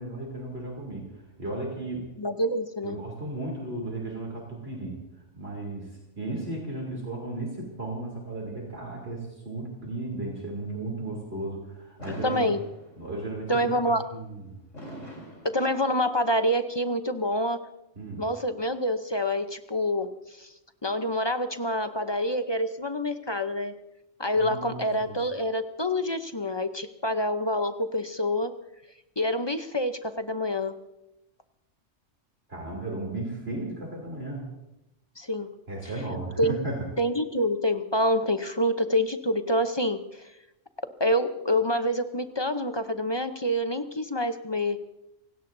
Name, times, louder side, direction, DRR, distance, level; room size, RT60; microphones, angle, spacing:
voice 1, 0.0-2.0 2.8-5.0 5.4-5.9 6.2-12.5 13.0-14.6 18.0-18.2 24.4-25.2 32.5-34.4 35.7-36.9, right 2 dB, 55° right, -1 dB, 3.4 m, -35 dB
voice 2, 2.2-3.0 12.2-12.6 13.5-14.0 15.4-17.6 18.2-20.1 20.4-20.5 20.8-23.7 24.2-28.5 29.2-30.7 35.2-35.5 36.4-36.6 37.0-40.2 41.0-44.8, equal, 25° left, 8 dB, 0.6 m, -27 dB
Fireworks, 12.0-13.3 14.7-16.3, equal, 75° left, 4.5 m, -42 dB
28.0 x 17.5 x 2.7 m, 0.92 s
omnidirectional pair, 1.2 m